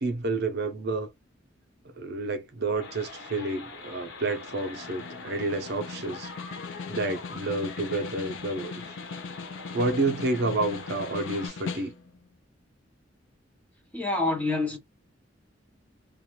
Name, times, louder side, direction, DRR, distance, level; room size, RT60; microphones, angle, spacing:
voice 1, 0.0-1.1 2.0-6.3 6.9-8.8 9.7-11.9, right 2 dB, 55° right, 0.6 m, -29 dB
sound 1, 2.8-11.5, left 3 dB, 60° left, 1.1 m, -43 dB
Snare drum, 4.3-12.2, left 5 dB, 85° left, 0.5 m, -40 dB
voice 2, 13.9-14.8, left 2 dB, 10° left, 0.7 m, -27 dB
2.5 x 2.2 x 2.9 m
head